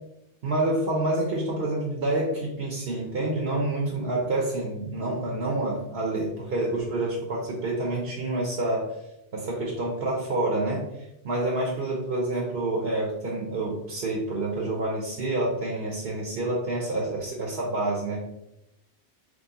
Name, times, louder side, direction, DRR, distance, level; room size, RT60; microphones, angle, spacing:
voice 1, 0.4-8.9 9.3-10.9 11.2-18.2, right 2 dB, 65° right, -2 dB, 1.0 m, -28 dB
6.2 x 2.2 x 2.8 m, 0.87 s
omnidirectional pair, 1.2 m